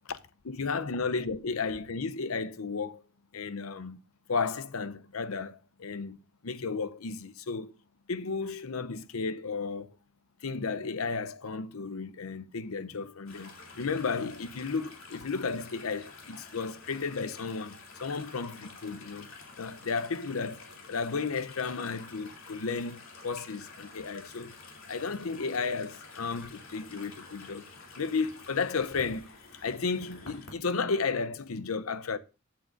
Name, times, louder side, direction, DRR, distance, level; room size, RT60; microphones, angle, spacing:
voice 1, 0.4-3.0 3.3-4.0 4.3-6.2 6.4-7.7 8.1-10.0 10.4-24.5 24.9-29.3 29.6-32.2, left 4 dB, 85° left, 0.7 m, -33 dB
sound 1, 13.3-30.5, left 3 dB, 65° left, 3.1 m, -49 dB
15.0 x 8.6 x 2.6 m
head